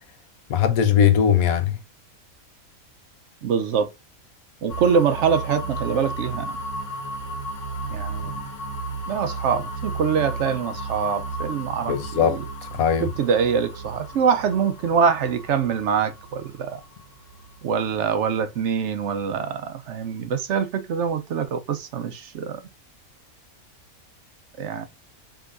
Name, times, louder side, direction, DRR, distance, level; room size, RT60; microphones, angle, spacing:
voice 1, 0.5-1.8 11.9-12.4 12.7-13.1, left 8 dB, 85° left, 1.2 m, -19 dB
voice 2, 3.4-3.9 4.6-6.6 7.9-8.3 9.1-12.4 13.0-16.8 17.6-22.6 24.6-24.9, right 6 dB, 65° right, 0.8 m, -24 dB
sound 1, 4.7-18.5, right 2 dB, 60° left, 1.4 m, -34 dB
4.9 x 3.7 x 2.5 m
omnidirectional pair, 1.5 m